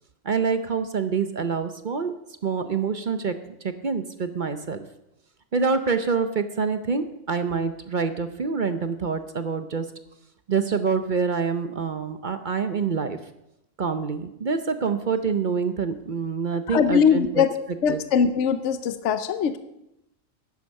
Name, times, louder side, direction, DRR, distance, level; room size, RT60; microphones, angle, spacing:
voice 1, 0.2-2.1 2.4-3.3 3.6-4.8 5.5-9.9 10.5-13.2 13.8-17.4 17.9-18.0, right 5 dB, 45° right, 9 dB, 0.7 m, -26 dB
voice 2, 16.7-17.5 17.8-19.6, left 7 dB, 65° left, 11 dB, 1.0 m, -21 dB
10.5 x 10.0 x 6.4 m, 0.86 s
omnidirectional pair, 1.4 m